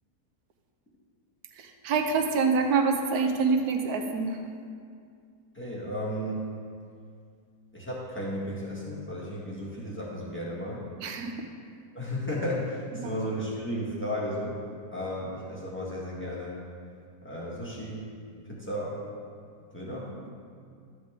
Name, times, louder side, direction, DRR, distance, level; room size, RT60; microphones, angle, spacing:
voice 1, 1.5-4.4 11.0-11.5 13.0-13.2, right 4 dB, 75° right, 5 dB, 1.2 m, -26 dB
voice 2, 5.5-6.5 7.7-10.8 11.9-14.6 14.9-16.6 17.2-18.1 18.5-19.0 19.7-20.1, equal, 5° left, -5 dB, 1.6 m, -34 dB
12.0 x 8.0 x 3.6 m, 2.2 s
omnidirectional pair, 1.7 m